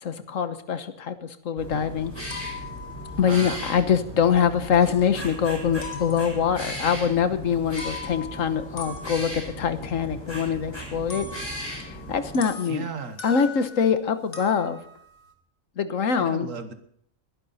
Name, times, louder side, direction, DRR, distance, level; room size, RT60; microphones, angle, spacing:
voice 1, 0.0-2.1 3.2-11.3 11.8-12.8 13.2-14.8 15.8-16.5, left 7 dB, 85° left, 10 dB, 1.5 m, -24 dB
sound 1, 1.6-12.4, equal, 20° left, 5.6 m, -37 dB
sound 2, 2.2-4.5 4.9-5.4 5.8-6.7 7.6-14.0 14.3-15.3, left 4 dB, 45° left, 1.9 m, -42 dB
voice 2, 3.3-3.6 12.6-13.2 16.2-16.7, right 6 dB, 80° right, 9 dB, 1.8 m, -35 dB
22.0 x 11.0 x 4.2 m, 0.67 s
omnidirectional pair, 1.3 m